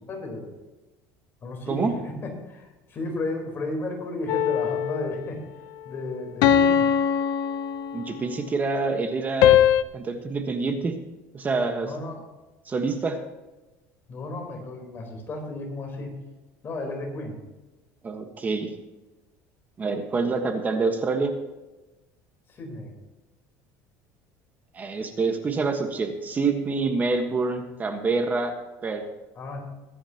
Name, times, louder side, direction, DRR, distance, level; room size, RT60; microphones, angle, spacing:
voice 1, 0.1-0.5 1.4-5.4 5.9-6.8 11.8-12.2 14.1-16.1 16.6-17.4 22.5-22.9 29.4-29.6, left 2 dB, 35° left, 1 dB, 4.0 m, -33 dB
sound 1, 4.3-5.3 6.4-8.3 9.4-9.8, left 9 dB, 70° left, 0.8 m, -21 dB
voice 2, 7.9-9.6 9.9-10.9 11.3-11.9 12.7-13.2 18.0-18.7 19.8-21.3 24.7-28.5 28.8-29.0, right 4 dB, 25° right, 5 dB, 1.4 m, -26 dB
22.0 x 10.0 x 3.0 m, 1.1 s
cardioid pair, 135°, 7 cm